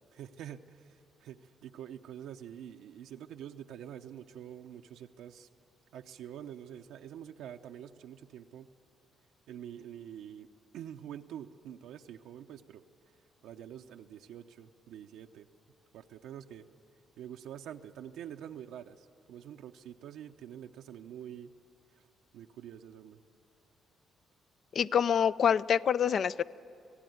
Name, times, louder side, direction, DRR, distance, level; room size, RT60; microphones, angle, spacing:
voice 1, 0.1-5.5 5.9-8.7 9.5-10.5 10.7-12.8 13.4-15.5 15.9-16.7 17.2-21.5 22.3-23.2, right 10 dB, 85° right, 4 dB, 0.7 m, -46 dB
voice 2, 24.7-26.4, left 8 dB, 55° left, 17 dB, 0.5 m, -26 dB
25.5 x 16.5 x 9.4 m, 2.7 s
cardioid pair, 90°, 0 cm